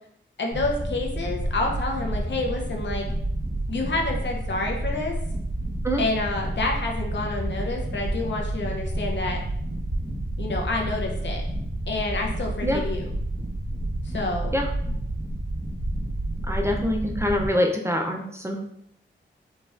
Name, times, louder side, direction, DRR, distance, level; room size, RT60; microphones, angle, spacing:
voice 1, 0.4-3.1 3.7-5.2 6.0-9.4 10.4-11.4 11.9-13.1 14.0-14.6, left 2 dB, 65° left, 1 dB, 0.7 m, -28 dB
sound 1, 0.5-17.5, right 1 dB, 40° right, 1.4 m, -30 dB
voice 2, 16.4-18.6, equal, 15° right, 1 dB, 0.5 m, -25 dB
4.0 x 2.4 x 2.5 m, 0.70 s
wide cardioid pair, 70°, 20 cm